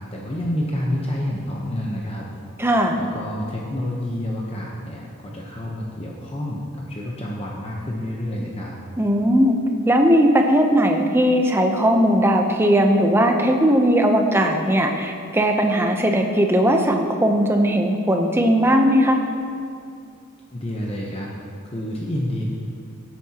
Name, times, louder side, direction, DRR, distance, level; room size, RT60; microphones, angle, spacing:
voice 1, 0.0-2.3 3.0-8.7 20.5-21.3 21.6-22.4, left 1 dB, 25° left, -3 dB, 0.9 m, -28 dB
voice 2, 2.6-3.0 9.0-9.6 9.9-19.2, equal, 10° right, 3 dB, 0.7 m, -18 dB
16.5 x 8.6 x 2.9 m, 2.4 s
head